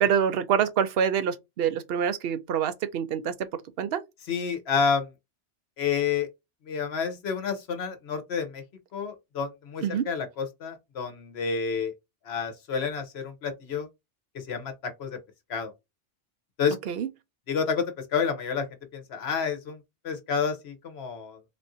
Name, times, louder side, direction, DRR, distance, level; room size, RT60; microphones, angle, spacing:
voice 1, 0.0-3.3 3.8-4.0 9.8-10.1 16.9-17.1, right 8 dB, 65° right, 0.7 m, -26 dB
voice 2, 4.3-5.1 5.8-6.3 6.7-8.6 8.9-11.9 12.2-13.9 14.5-15.2 15.5-15.7 16.6-16.8 17.5-18.7 18.9-19.8 20.0-21.4, left 6 dB, 65° left, 1.0 m, -29 dB
3.5 x 2.5 x 2.5 m
omnidirectional pair, 1.2 m